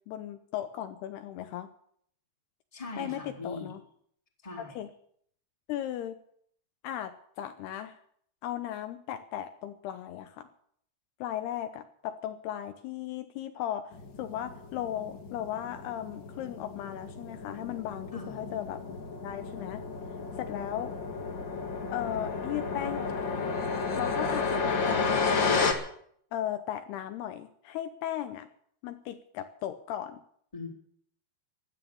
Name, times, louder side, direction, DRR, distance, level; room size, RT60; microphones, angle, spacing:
voice 1, 0.1-1.7 3.0-3.8 4.6-4.9 5.7-6.2 6.8-8.0 8.4-10.5 11.2-19.0 19.2-19.8 20.4-20.9 21.9-23.5 24.0-25.5 26.3-28.5 28.8-30.2, left 11 dB, 75° left, 9 dB, 2.7 m, -36 dB
voice 2, 2.7-3.7 4.4-4.8 18.1-18.4 30.5-30.7, left 2 dB, 10° left, 1 dB, 2.8 m, -40 dB
sound 1, 13.9-25.7, left 4 dB, 50° left, 1.4 m, -32 dB
16.5 x 11.5 x 7.1 m, 0.63 s
omnidirectional pair, 5.0 m